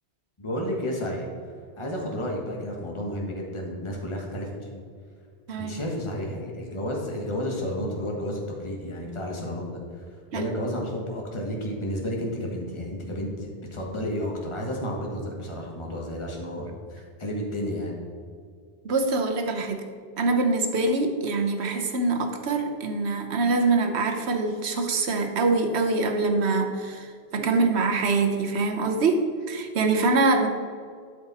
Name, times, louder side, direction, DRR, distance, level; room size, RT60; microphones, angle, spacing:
voice 1, 0.4-1.3 1.8-4.8 5.6-9.8 10.3-18.0, equal, 25° left, -1 dB, 1.5 m, -31 dB
voice 2, 5.5-5.8 10.3-10.5 18.8-19.8 20.2-30.5, right 3 dB, 80° right, 5 dB, 1.2 m, -24 dB
12.0 x 5.1 x 4.2 m, 2.2 s
omnidirectional pair, 1.1 m